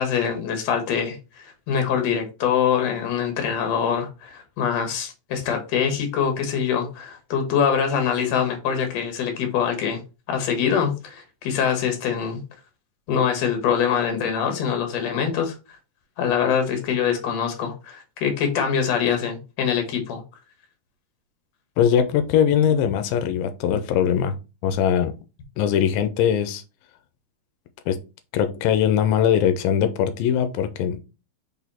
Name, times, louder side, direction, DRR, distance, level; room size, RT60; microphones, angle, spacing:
voice 1, 0.0-10.0 10.3-12.4 13.1-15.6 16.2-20.2, left 7 dB, 55° left, 5 dB, 2.3 m, -24 dB
voice 2, 21.8-24.4 24.6-25.1 25.6-26.6 27.9-28.0 28.3-31.0, left 9 dB, 90° left, 9 dB, 2.4 m, -21 dB
5.4 x 4.1 x 4.3 m, 0.30 s
omnidirectional pair, 4.1 m